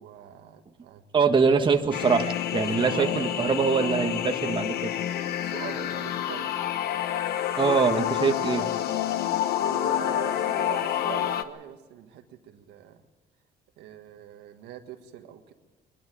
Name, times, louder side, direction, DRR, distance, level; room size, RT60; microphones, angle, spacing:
voice 1, 0.0-1.3 2.7-3.5 3.7-4.4 5.4-6.7 9.6-13.0 13.8-15.5, right 11 dB, 85° right, 6 dB, 1.7 m, -42 dB
voice 2, 1.1-4.9 7.6-8.7, right 5 dB, 30° right, 5 dB, 1.5 m, -23 dB
sound 1, 1.9-11.4, left 11 dB, 70° left, 1.1 m, -28 dB
22.5 x 12.0 x 9.7 m, 1.2 s
cardioid pair, 110°, 17 cm